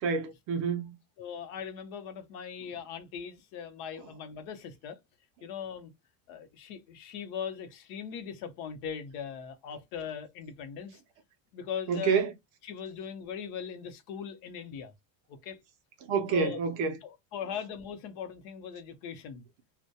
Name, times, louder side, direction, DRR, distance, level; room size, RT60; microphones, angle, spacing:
voice 1, 0.0-0.9 11.9-12.3 16.0-17.0, right 5 dB, 45° right, 0.4 m, -28 dB
voice 2, 1.2-5.0 5.4-5.9 6.3-11.0 11.5-12.2 12.6-14.9 15.3-15.6 16.3-16.6 17.0-19.4, left 7 dB, 55° left, 0.7 m, -40 dB
2.1 x 2.1 x 2.6 m
cardioid pair, 165°, 46 cm